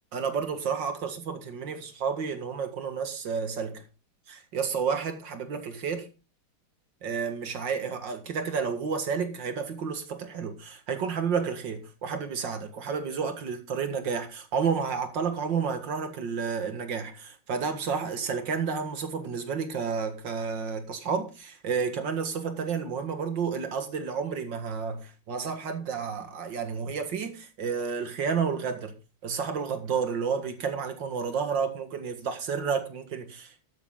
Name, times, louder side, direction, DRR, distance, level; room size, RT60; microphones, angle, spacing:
voice 1, 0.1-3.8 4.3-6.1 7.0-28.9 29.2-33.5, right 6 dB, 65° right, 2.5 m, -31 dB
12.5 x 9.8 x 3.8 m
omnidirectional pair, 2.2 m